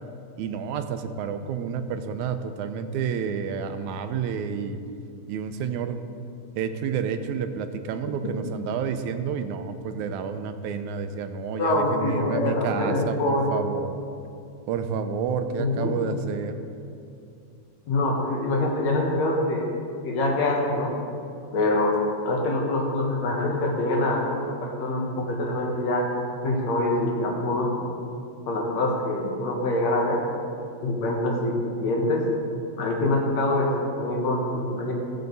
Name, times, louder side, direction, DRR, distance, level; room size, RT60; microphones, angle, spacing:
voice 1, 0.4-4.8 5.3-6.0 6.6-14.1 14.7-16.6, right 6 dB, 85° right, 8 dB, 2.0 m, -30 dB
voice 2, 11.6-13.5 15.6-15.9 17.9-19.7 20.0-20.9 21.5-26.1 26.4-27.9 28.5-30.2 30.8-32.3 32.8-34.9, left 2 dB, 70° left, -1 dB, 2.5 m, -25 dB
16.0 x 6.6 x 4.0 m, 2.5 s
omnidirectional pair, 3.4 m